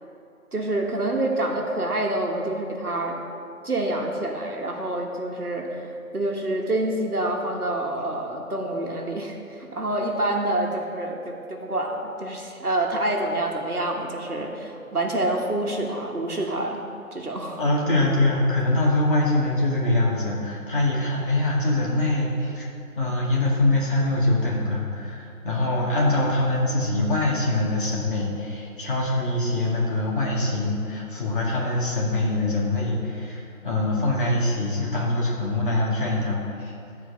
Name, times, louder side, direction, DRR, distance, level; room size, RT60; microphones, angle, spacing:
voice 1, 0.5-3.2 3.6-16.8 17.1-17.6, right 1 dB, 90° right, 0 dB, 1.4 m, -27 dB
voice 2, 17.6-22.7 23.0-36.8, left 2 dB, 35° left, -5 dB, 2.0 m, -23 dB
11.0 x 4.7 x 6.7 m, 2.6 s
figure-of-eight pair, 160°, 44 cm